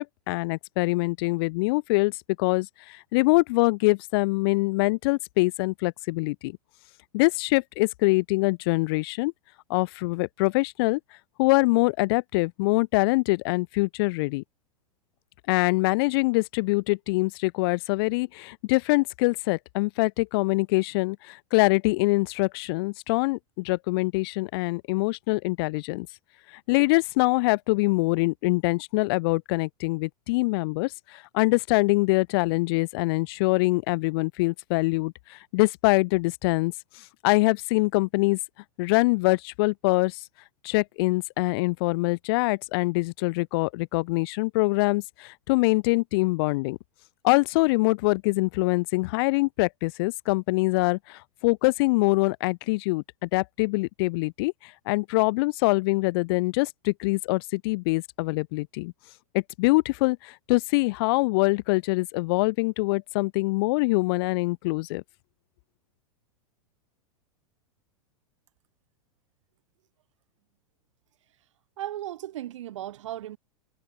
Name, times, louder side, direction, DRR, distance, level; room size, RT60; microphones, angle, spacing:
voice 1, 0.0-6.6 7.1-9.3 9.7-11.0 11.4-14.4 15.5-26.1 26.7-36.7 37.2-38.4 38.8-40.2 40.6-46.8 47.2-54.5 54.9-58.9 59.3-65.0, left 25 dB, 40° left, 0.6 m, -24 dB
voice 2, 71.8-73.4, right 13 dB, 55° right, 1.2 m, -36 dB
figure-of-eight pair, 95°, 19 cm